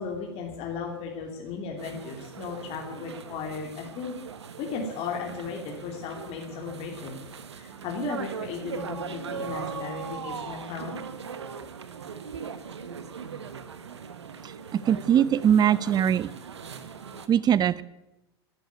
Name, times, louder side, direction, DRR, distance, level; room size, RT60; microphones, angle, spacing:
voice 1, 0.0-4.1 4.6-7.2 7.5-11.0, left 5 dB, 45° left, 1 dB, 3.1 m, -35 dB
sound 1, 1.8-17.3, right 6 dB, 90° right, 1.3 m, -39 dB
voice 2, 14.7-16.3 17.3-17.8, right 9 dB, 30° right, 18 dB, 0.8 m, -21 dB
11.5 x 11.5 x 9.5 m, 0.98 s
hypercardioid pair, 95°, 14 cm